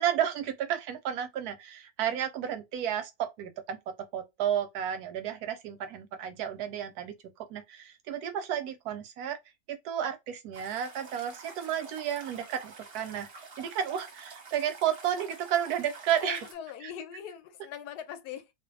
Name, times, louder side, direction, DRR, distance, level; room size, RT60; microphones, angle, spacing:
voice 1, 0.0-9.4 9.7-13.3 13.6-16.5 16.8-16.9, right 10 dB, 75° right, 1.0 m, -32 dB
sound 1, 10.5-16.5, right 4 dB, 45° right, 0.8 m, -48 dB
voice 2, 16.2-18.5, left 9 dB, 75° left, 1.1 m, -41 dB
2.5 x 2.4 x 2.6 m
omnidirectional pair, 1.8 m